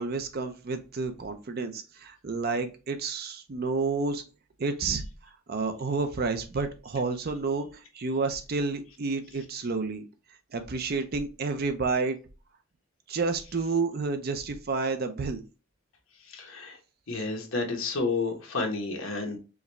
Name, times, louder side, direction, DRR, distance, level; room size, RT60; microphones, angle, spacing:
voice 1, 0.0-4.2 4.6-5.0 5.5-10.1 10.5-12.2 13.1-15.4, right 4 dB, 50° right, 8 dB, 0.5 m, -30 dB
voice 2, 16.2-16.8 17.1-19.4, left 3 dB, 75° left, 3 dB, 1.0 m, -31 dB
4.7 x 2.2 x 3.0 m, 0.32 s
head